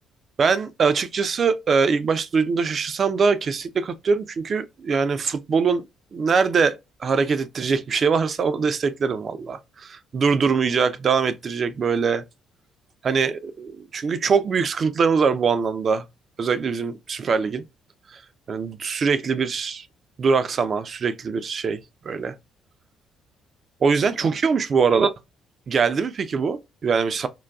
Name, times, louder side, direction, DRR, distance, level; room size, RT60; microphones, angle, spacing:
voice 1, 0.4-5.9 6.1-6.8 7.0-12.2 13.0-16.1 16.4-17.6 18.5-19.8 20.2-21.8 22.1-22.3 23.8-25.1 25.7-27.3, right 5 dB, 50° right, 0.4 m, -22 dB
3.8 x 2.2 x 2.2 m
supercardioid pair, 60°, 0 cm